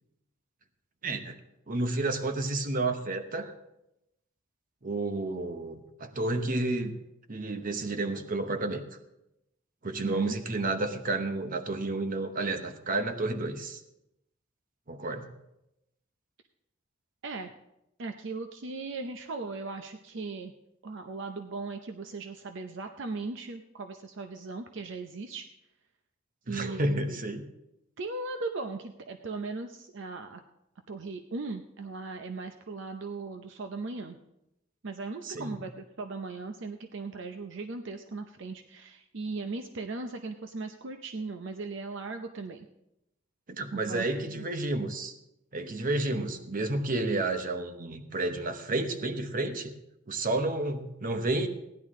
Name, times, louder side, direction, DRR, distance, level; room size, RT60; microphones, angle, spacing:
voice 1, 1.0-1.4 1.7-3.5 4.8-7.0 7.3-8.8 9.8-13.8 14.9-15.3 26.5-27.4 35.2-35.6 43.5-45.1 45.5-49.7 50.1-51.5, right 2 dB, 45° right, 8 dB, 0.9 m, -31 dB
voice 2, 10.0-10.4 17.2-17.5 18.0-20.5 20.8-25.5 26.5-27.2 28.0-30.4 30.9-34.2 34.8-42.7 43.7-44.4, right 3 dB, 65° right, 6 dB, 0.6 m, -38 dB
16.0 x 10.5 x 3.7 m, 0.87 s
head